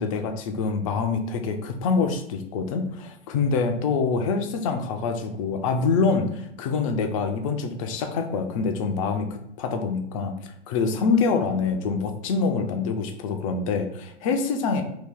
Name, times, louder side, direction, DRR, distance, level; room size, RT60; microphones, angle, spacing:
voice 1, 0.0-10.3 10.7-14.8, left 4 dB, 30° left, 6 dB, 0.4 m, -25 dB
2.7 x 2.7 x 3.6 m, 0.75 s
figure-of-eight pair, 100°, 35 cm